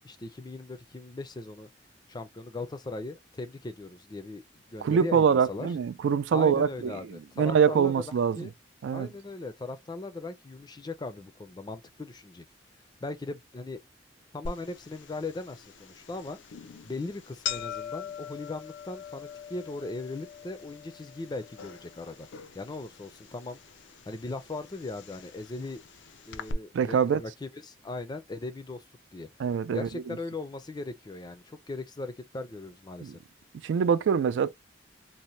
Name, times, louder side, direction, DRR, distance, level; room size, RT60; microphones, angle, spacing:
voice 1, 0.0-1.7 2.1-5.7 6.3-8.5 8.9-12.4 13.0-13.8 14.3-16.4 16.8-22.3 22.5-23.6 24.1-25.8 26.3-28.8 29.1-29.3 29.7-33.2, left 2 dB, 25° left, 0.4 m, -38 dB
voice 2, 4.8-8.5 8.8-9.1 26.7-27.2 29.4-30.2 33.0-33.1 33.6-34.5, right 7 dB, 85° right, 0.3 m, -25 dB
sound 1, 14.5-26.5, left 7 dB, 90° left, 0.4 m, -43 dB
2.7 x 2.1 x 3.0 m
head